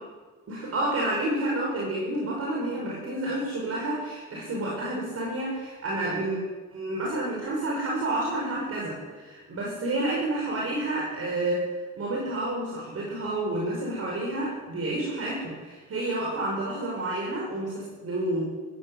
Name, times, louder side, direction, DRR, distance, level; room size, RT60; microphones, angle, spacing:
voice 1, 0.5-6.4 6.7-11.7 11.9-18.4, right 1 dB, 50° right, -3 dB, 6.2 m, -29 dB
23.0 x 15.0 x 8.2 m, 1.4 s
wide cardioid pair, 175°, 30 cm